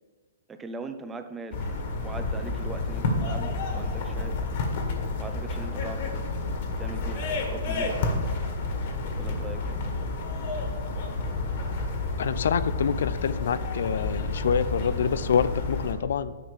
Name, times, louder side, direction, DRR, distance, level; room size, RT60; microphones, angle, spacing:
voice 1, 0.5-4.4 5.2-6.3 6.8-8.3 9.2-9.8, right 3 dB, 10° right, 8 dB, 0.6 m, -40 dB
sound 1, 1.5-15.9, left 3 dB, 50° left, 1.8 m, -30 dB
voice 2, 12.2-16.4, left 7 dB, 70° left, 15 dB, 0.4 m, -26 dB
10.0 x 4.2 x 7.0 m, 1.5 s
hypercardioid pair, 145°, 0 cm